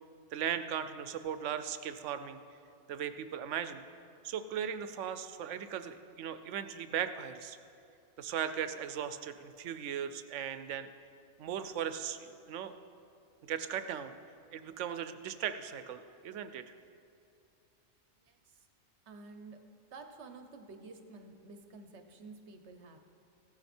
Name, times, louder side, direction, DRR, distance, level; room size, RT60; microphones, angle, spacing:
voice 1, 0.3-2.4 2.9-3.8 4.2-7.6 8.2-10.9 11.4-12.7 13.5-14.1 14.5-16.7, right 8 dB, 90° right, 11 dB, 1.0 m, -38 dB
voice 2, 18.2-18.7 19.1-19.6 19.9-23.0, right 3 dB, 70° right, 6 dB, 1.2 m, -51 dB
15.5 x 8.8 x 4.4 m, 2.6 s
omnidirectional pair, 1.2 m